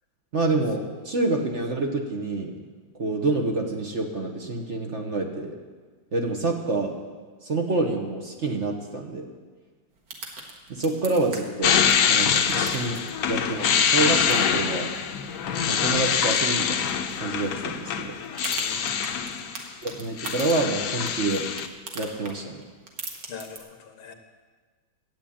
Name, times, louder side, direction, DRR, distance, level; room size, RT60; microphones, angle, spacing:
voice 1, 0.3-2.5 3.0-5.5 6.1-6.9 7.4-9.3 10.7-11.8 12.1-13.0 13.3-14.9 15.7-16.9 17.2-18.1 19.8-21.5 21.9-22.6, right 2 dB, 40° right, 2 dB, 1.3 m, -27 dB
sound 1, 9.9-23.6, right 3 dB, 60° right, 2.2 m, -42 dB
sound 2, 11.6-19.6 19.9-21.7, left 7 dB, 65° left, 1.2 m, -24 dB
voice 2, 18.6-19.2 23.3-24.1, left 5 dB, 90° left, 6 dB, 2.0 m, -42 dB
12.5 x 8.3 x 8.7 m, 1.4 s
omnidirectional pair, 2.2 m